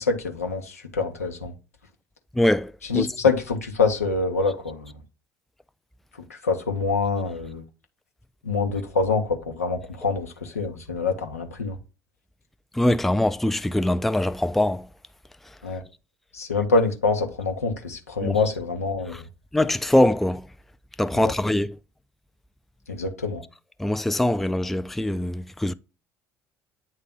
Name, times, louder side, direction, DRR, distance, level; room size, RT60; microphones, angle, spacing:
voice 1, 0.0-1.5 2.8-4.9 6.3-7.6 8.4-11.8 15.6-15.8 16.3-19.2 21.1-21.3 22.9-23.4, left 4 dB, 90° left, 0.9 m, -25 dB
voice 2, 2.4-3.1 12.8-14.9 18.2-18.4 19.5-20.4 21.0-21.8 23.8-25.7, left 1 dB, 5° left, 0.3 m, -22 dB
9.0 x 3.3 x 3.7 m
figure-of-eight pair, 60°, 8 cm